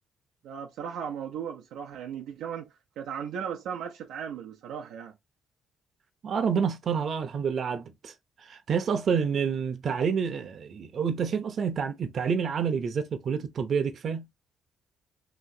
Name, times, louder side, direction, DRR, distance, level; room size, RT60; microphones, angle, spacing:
voice 1, 0.4-5.1, right 8 dB, 85° right, 0.6 m, -37 dB
voice 2, 6.2-8.1 8.5-14.3, right 6 dB, 55° right, 0.8 m, -28 dB
3.0 x 2.9 x 2.7 m
cardioid pair, 90°, 0 cm